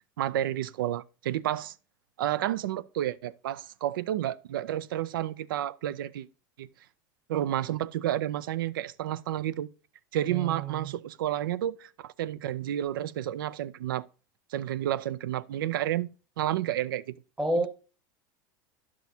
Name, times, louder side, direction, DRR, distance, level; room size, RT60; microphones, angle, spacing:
voice 1, 0.2-1.7 2.2-6.3 6.6-6.7 7.3-9.7 10.1-14.1 14.5-16.1 16.4-17.1 17.6-17.7, right 12 dB, 85° right, 0.4 m, -30 dB
voice 2, 10.3-10.9 17.4-17.7, right 1 dB, 10° right, 0.8 m, -29 dB
10.5 x 6.2 x 2.7 m
hypercardioid pair, 100°, 11 cm